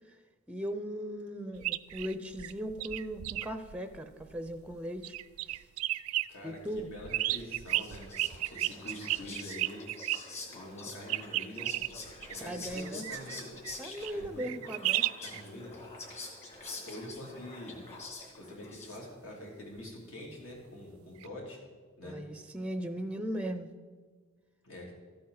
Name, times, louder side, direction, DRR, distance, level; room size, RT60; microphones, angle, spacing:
voice 1, 0.5-5.2 5.5-5.6 6.4-6.9 12.4-13.0 13.8-15.1 22.0-23.7, equal, 5° right, 9 dB, 0.5 m, -38 dB
sound 1, 1.6-4.7 5.0-6.3 6.7-10.2 11.1-15.4 21.2-21.3, right 15 dB, 85° right, 0.3 m, -34 dB
voice 2, 6.3-8.0 8.5-9.9 10.5-11.7 12.3-13.5 14.1-14.5 15.2-15.7 16.1-16.3 16.8-17.8 18.4-21.6 22.0-22.2 24.6-24.9, left 1 dB, 70° left, -2 dB, 3.1 m, -45 dB
Whispering, 7.4-19.3, left 3 dB, 30° left, 2.4 m, -46 dB
14.0 x 8.5 x 3.9 m, 1.5 s
head